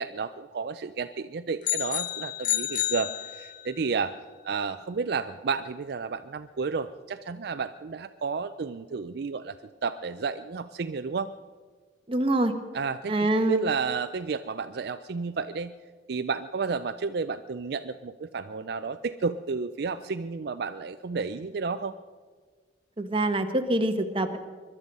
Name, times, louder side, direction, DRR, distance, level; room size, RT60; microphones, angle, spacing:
voice 1, 0.0-4.1 4.4-9.6 9.8-11.3 12.7-15.7 16.1-21.9, right 5 dB, 60° right, 10 dB, 0.4 m, -31 dB
sound 1, 1.6-3.8, left 13 dB, 45° left, 0.7 m, -30 dB
voice 2, 12.1-12.5 13.1-13.7 23.0-24.4, right 1 dB, 30° right, 6 dB, 1.1 m, -25 dB
21.5 x 12.0 x 5.4 m, 1.5 s
head